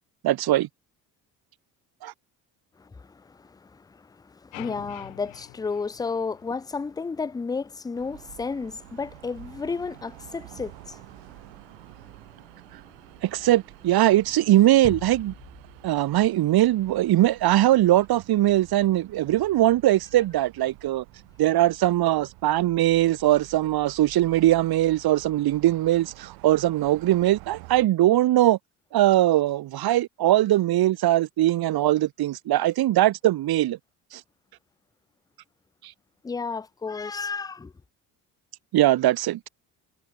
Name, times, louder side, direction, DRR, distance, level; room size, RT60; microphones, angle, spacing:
voice 1, 0.2-0.7 2.0-2.1 13.2-15.3 15.8-21.0 21.4-28.6 28.9-33.8 34.1-34.2 38.7-39.5, right 14 dB, 55° right, 1.0 m, -21 dB
voice 2, 2.8-11.5 11.7-12.1 36.2-37.7, left 4 dB, 10° left, 0.4 m, -33 dB
sound 1, 4.5-6.8, left 30 dB, 85° left, 2.0 m, -45 dB
sound 2, 7.9-27.9, right 28 dB, 85° right, 7.5 m, -49 dB
sound 3, 14.8-17.3, left 9 dB, 55° left, 5.8 m, -43 dB
supercardioid pair, 70°, 44 cm